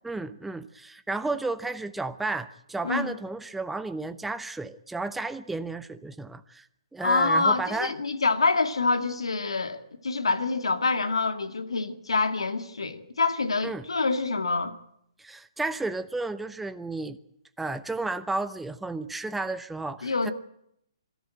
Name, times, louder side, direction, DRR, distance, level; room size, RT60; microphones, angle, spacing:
voice 1, 0.0-6.6 6.9-7.9 13.6-13.9 15.2-17.2 17.6-20.3, right 3 dB, 5° right, 0.8 m, -32 dB
voice 2, 2.8-3.1 7.0-14.7 20.0-20.3, left 3 dB, 80° left, 2.1 m, -26 dB
25.0 x 13.5 x 9.1 m
figure-of-eight pair, 130°, 3 cm